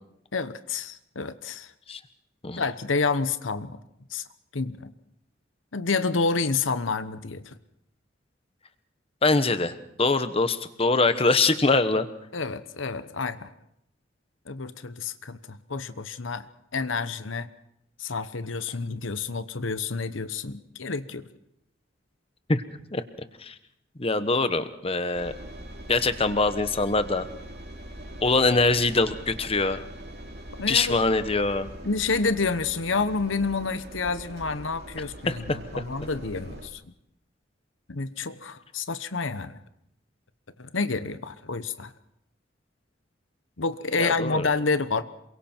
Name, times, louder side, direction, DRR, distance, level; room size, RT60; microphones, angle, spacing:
voice 1, 0.3-1.7 2.5-3.8 4.1-4.2 4.5-4.9 5.7-7.5 12.3-13.5 14.5-16.4 16.7-17.5 18.0-21.3 30.6-31.0 31.8-36.8 37.9-39.6 40.6-41.9 43.6-45.0, left 4 dB, 85° left, 13 dB, 1.0 m, -29 dB
voice 2, 9.2-12.1 22.5-22.6 22.9-23.0 23.4-23.5 24.0-25.3 25.9-27.3 28.2-29.9 30.7-31.7 35.3-35.6 44.0-44.5, left 3 dB, 30° left, 11 dB, 1.2 m, -23 dB
Engine, 25.1-36.7, right 1 dB, 55° right, 2.8 m, -42 dB
27.5 x 23.0 x 4.5 m, 0.77 s
head